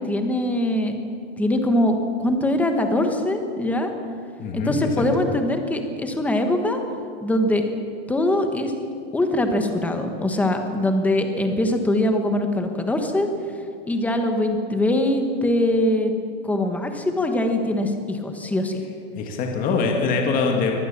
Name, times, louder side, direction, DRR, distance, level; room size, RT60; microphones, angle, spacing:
voice 1, 0.1-0.9 1.4-3.9 4.5-6.8 7.2-7.6 8.1-8.7 9.1-13.3 13.9-16.1 16.4-18.8, left 1 dB, 5° left, 5 dB, 1.2 m, -22 dB
voice 2, 4.4-5.3 19.2-20.7, left 4 dB, 20° left, 2 dB, 2.2 m, -23 dB
23.5 x 18.5 x 7.3 m, 2.4 s
supercardioid pair, 170°, 37 cm